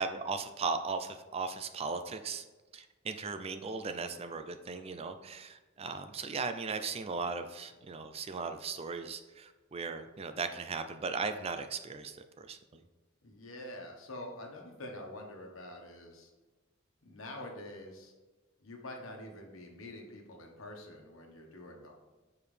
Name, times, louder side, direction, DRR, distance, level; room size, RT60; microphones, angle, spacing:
voice 1, 0.0-2.4 2.7-12.8, right 4 dB, 30° right, 8 dB, 0.4 m, -37 dB
voice 2, 13.2-16.3 17.0-18.1 18.6-21.9, left 1 dB, 75° left, 1 dB, 1.3 m, -46 dB
7.2 x 4.7 x 3.3 m, 1.2 s
head